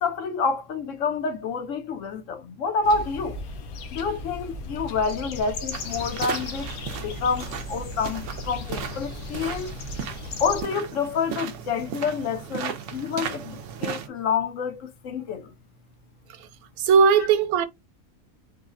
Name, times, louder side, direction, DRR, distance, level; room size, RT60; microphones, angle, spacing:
voice 1, 0.0-3.4 3.9-6.7 7.0-9.7 10.4-15.5, left 5 dB, 65° left, 0.9 m, -28 dB
sound 1, 2.8-10.6, left 3 dB, 85° left, 1.2 m, -36 dB
sound 2, 5.7-14.1, right 8 dB, 65° right, 0.8 m, -36 dB
voice 2, 16.8-17.7, right 6 dB, 90° right, 1.1 m, -18 dB
3.9 x 2.1 x 3.6 m
omnidirectional pair, 1.5 m